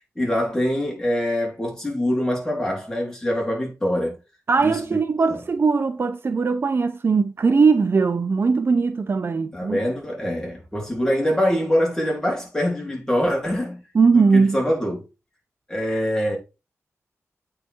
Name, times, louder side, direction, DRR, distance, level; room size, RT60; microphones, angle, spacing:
voice 1, 0.2-4.2 4.6-4.8 5.3-5.4 9.5-13.8 14.1-15.0 15.7-16.4, equal, 10° left, 3.7 m, -24 dB
voice 2, 4.5-9.8 13.9-14.6, right 4 dB, 50° right, 0.7 m, -20 dB
8.5 x 4.9 x 4.6 m
wide cardioid pair, 125°, 5 cm